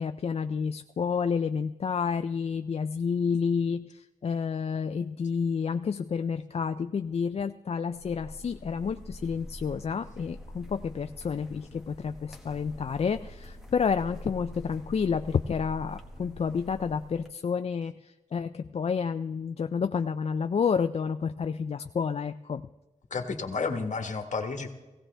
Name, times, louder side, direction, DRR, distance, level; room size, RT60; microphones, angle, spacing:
voice 1, 0.0-22.6, left 6 dB, 50° left, 9 dB, 0.4 m, -30 dB
sound 1, 7.9-17.3, equal, 5° right, 1.5 m, -45 dB
voice 2, 23.1-24.7, left 4 dB, 65° left, 6 dB, 1.5 m, -31 dB
17.0 x 16.5 x 3.4 m, 1.1 s
wide cardioid pair, 115°, 13 cm